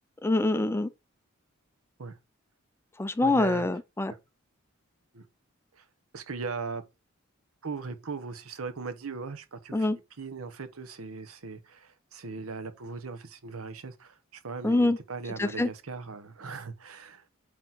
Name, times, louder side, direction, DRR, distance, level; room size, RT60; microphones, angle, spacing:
voice 1, 0.2-0.9 3.0-4.1 9.7-10.0 14.6-15.0 15.4-15.7, left 2 dB, 10° left, 0.4 m, -25 dB
voice 2, 3.2-3.7 4.1-4.2 5.1-5.2 5.7-5.8 6.1-6.8 7.6-9.9 10.2-17.2, right 4 dB, 90° right, 0.9 m, -39 dB
8.4 x 3.1 x 3.9 m
head